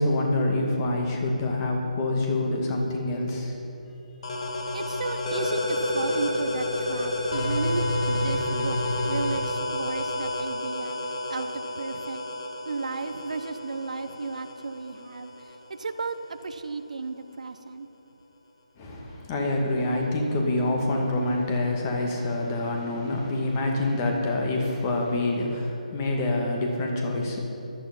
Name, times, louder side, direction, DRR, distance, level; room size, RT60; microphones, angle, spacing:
voice 1, 0.0-3.6 18.8-27.4, left 2 dB, 25° left, 0 dB, 2.1 m, -26 dB
sound 1, 4.2-15.6, left 1 dB, 50° left, 2.3 m, -29 dB
voice 2, 4.7-11.0 11.3-12.2 12.7-16.2 16.4-17.9, right 4 dB, 60° right, 9 dB, 0.9 m, -34 dB
16.5 x 12.0 x 5.4 m, 2.9 s
figure-of-eight pair, 145°, 4 cm